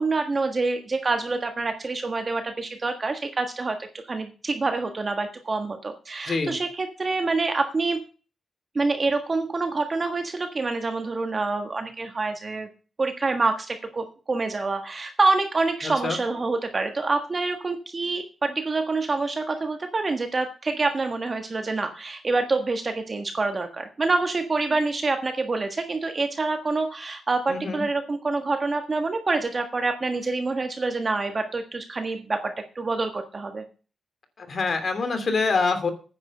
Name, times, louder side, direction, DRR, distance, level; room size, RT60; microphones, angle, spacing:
voice 1, 0.0-8.0 8.7-12.7 13.0-33.6, right 3 dB, 35° right, 6 dB, 1.4 m, -26 dB
voice 2, 27.5-27.8 34.4-35.9, left 4 dB, 55° left, 7 dB, 2.8 m, -25 dB
9.8 x 7.7 x 6.6 m, 0.37 s
cardioid pair, 100°, 0 cm